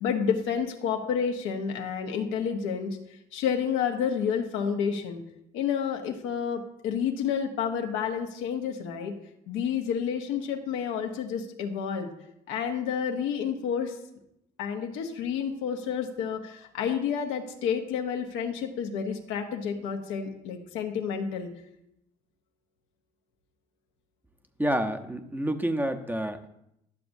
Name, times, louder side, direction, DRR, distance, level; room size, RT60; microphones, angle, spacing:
voice 1, 0.0-3.0 3.3-5.2 5.5-9.1 9.5-12.1 12.5-14.0 14.6-21.5, left 7 dB, 80° left, 3 dB, 1.1 m, -30 dB
voice 2, 24.6-26.5, right 1 dB, 10° right, 6 dB, 0.8 m, -28 dB
12.0 x 6.9 x 2.6 m, 0.79 s
supercardioid pair, 65°, 20 cm